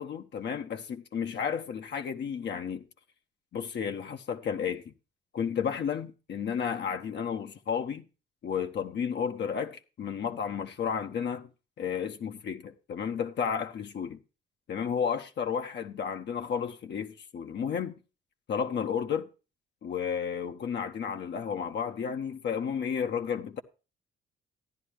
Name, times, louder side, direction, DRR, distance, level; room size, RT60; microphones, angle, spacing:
voice 1, 0.0-2.8 3.5-4.9 5.3-8.0 8.4-11.5 11.8-14.2 14.7-18.0 18.5-19.3 19.8-23.6, left 7 dB, 60° left, 1.2 m, -32 dB
13.5 x 10.5 x 3.1 m
cardioid pair, 90°, 20 cm